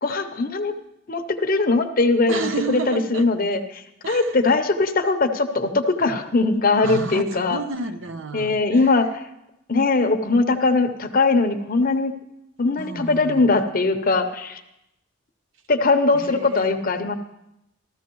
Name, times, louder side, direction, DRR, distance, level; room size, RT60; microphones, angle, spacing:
voice 1, 0.0-0.7 1.1-7.6 8.3-9.3 9.7-12.1 12.6-14.6 15.7-17.2, left 3 dB, 40° left, 6 dB, 0.8 m, -21 dB
voice 2, 2.3-3.3 4.0-4.4 6.8-8.9 12.8-13.4 16.1-16.8, right 3 dB, 65° right, 8 dB, 0.8 m, -31 dB
14.0 x 14.0 x 3.1 m, 0.85 s
head